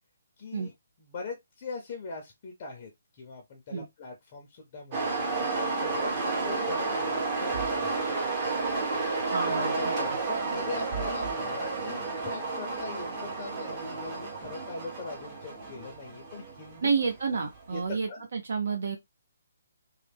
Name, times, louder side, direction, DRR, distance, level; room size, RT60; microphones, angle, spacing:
voice 1, 0.4-0.7 1.0-2.9 3.2-8.0 9.5-16.9 17.7-18.3, left 3 dB, 25° left, 0.6 m, -41 dB
sound 1, 4.9-17.6, right 3 dB, 20° right, 0.7 m, -31 dB
voice 2, 9.3-9.9 16.8-19.0, right 5 dB, 60° right, 0.6 m, -30 dB
3.2 x 2.2 x 3.3 m
hypercardioid pair, 175°, 0 cm